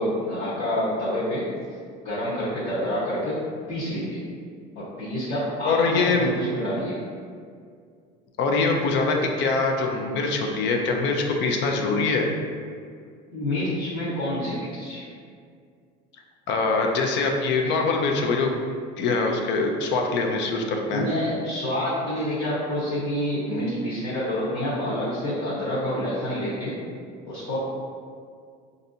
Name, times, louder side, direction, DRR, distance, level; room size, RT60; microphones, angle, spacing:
voice 1, 0.0-1.5 2.0-3.4 3.7-4.2 4.7-7.0 13.3-15.0 20.9-26.8 27.3-27.6, left 1 dB, 45° left, -11 dB, 1.1 m, -28 dB
voice 2, 5.6-6.3 8.4-12.3 16.5-18.5 19.0-21.0, left 3 dB, 60° left, 2 dB, 0.5 m, -23 dB
4.0 x 2.6 x 2.6 m, 2.1 s
cardioid pair, 115°, 21 cm